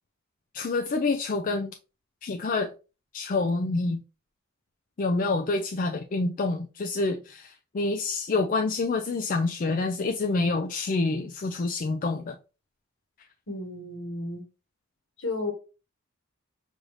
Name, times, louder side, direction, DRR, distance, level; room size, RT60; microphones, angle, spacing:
voice 1, 0.5-1.7 2.2-2.7 3.1-4.0 5.0-12.4, left 3 dB, 40° left, 0.4 m, -27 dB
voice 2, 13.5-14.4 15.2-15.5, left 2 dB, 65° left, 1.2 m, -33 dB
6.2 x 2.7 x 3.1 m
head